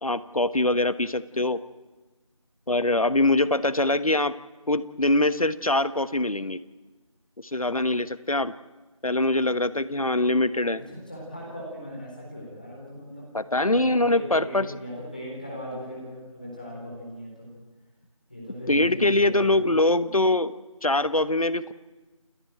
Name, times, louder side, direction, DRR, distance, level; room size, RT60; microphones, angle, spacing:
voice 1, 0.0-1.6 2.7-4.3 4.7-6.6 7.4-8.5 9.0-10.8 13.3-14.7 18.7-20.5 20.8-21.7, left 2 dB, 80° left, 14 dB, 1.2 m, -23 dB
voice 2, 10.9-13.3 13.6-17.5 18.3-19.6, equal, 15° left, -3 dB, 4.0 m, -38 dB
29.0 x 11.5 x 9.0 m, 1.2 s
figure-of-eight pair, 180°, 18 cm